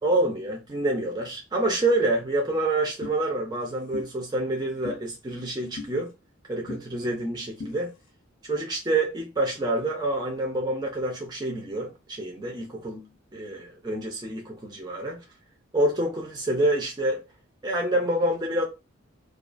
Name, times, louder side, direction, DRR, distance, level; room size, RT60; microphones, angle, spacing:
voice 1, 0.0-6.1 6.5-7.9 8.4-13.0 13.3-15.2 15.7-17.2 17.6-18.6, right 1 dB, 20° right, 0.4 m, -27 dB
sound 1, 3.0-3.2 3.9-4.1 4.8-5.0 5.8-5.9 6.7-6.8 7.6-7.7, left 3 dB, 65° left, 0.5 m, -36 dB
2.3 x 2.3 x 2.4 m
head